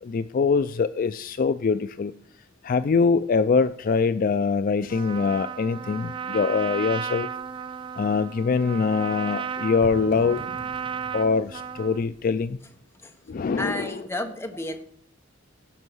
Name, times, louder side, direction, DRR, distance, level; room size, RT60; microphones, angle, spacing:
voice 1, 0.0-2.1 2.6-7.3 8.0-10.4 11.1-12.6 13.3-14.0, left 5 dB, 45° left, 0.3 m, -23 dB
Trumpet, 4.9-12.0, right 7 dB, 25° right, 0.4 m, -34 dB
sound 1, 7.3-12.5, equal, 60° right, 1.9 m, -45 dB
voice 2, 13.6-14.8, left 1 dB, 15° left, 1.2 m, -32 dB
16.5 x 5.5 x 6.2 m
head